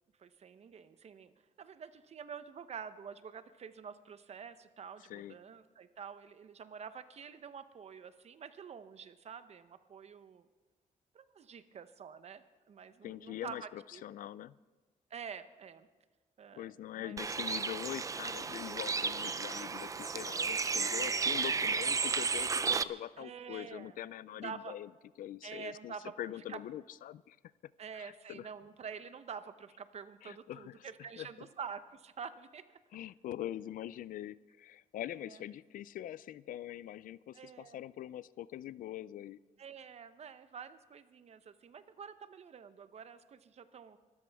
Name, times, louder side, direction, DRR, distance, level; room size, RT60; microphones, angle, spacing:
voice 1, 0.2-1.3 1.6-10.5 11.1-14.0 15.1-15.9 16.4-17.2 23.2-24.0 24.4-24.8 25.4-26.1 26.5-26.6 27.8-32.8 35.2-35.4 37.3-37.8 39.6-44.0, right 7 dB, 50° right, 12 dB, 0.8 m, -47 dB
voice 2, 5.0-5.4 13.0-14.6 16.5-24.9 25.2-27.4 27.9-28.5 30.2-31.3 32.9-39.4, left 12 dB, 75° left, 19 dB, 0.4 m, -43 dB
Bird, 17.2-22.8, right 5 dB, 25° right, 0.4 m, -33 dB
24.5 x 13.5 x 3.5 m, 1.3 s
cardioid pair, 125°, 14 cm